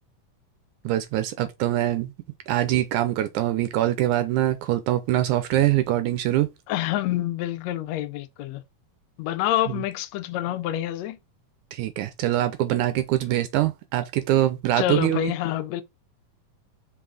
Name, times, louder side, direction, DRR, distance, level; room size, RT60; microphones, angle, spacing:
voice 1, 0.8-2.1 2.5-6.5 11.7-15.3, right 13 dB, 80° right, 1.9 m, -23 dB
voice 2, 6.7-8.6 9.2-11.2 14.8-15.8, left 13 dB, 75° left, 1.6 m, -27 dB
5.8 x 4.0 x 4.8 m
omnidirectional pair, 3.9 m